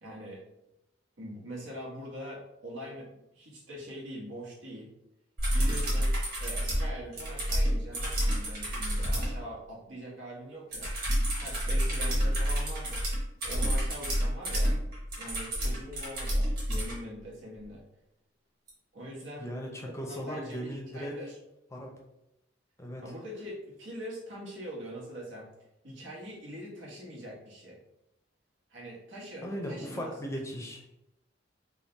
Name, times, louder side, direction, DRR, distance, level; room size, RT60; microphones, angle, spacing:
voice 1, 0.0-0.4 1.2-4.9 5.5-10.9 11.4-13.1 13.4-14.8 15.1-17.8 18.9-19.5 19.8-21.4 23.0-25.5 25.8-27.8 28.7-30.1, equal, 90° right, -3 dB, 1.2 m, -43 dB
sound 1, 5.4-9.3 10.7-16.9 18.7-18.8, equal, 50° right, 1.5 m, -29 dB
voice 2, 19.4-21.2 21.7-21.9 22.8-23.0 29.4-30.8, equal, 15° left, 0 dB, 0.6 m, -37 dB
3.6 x 2.2 x 4.0 m, 0.87 s
head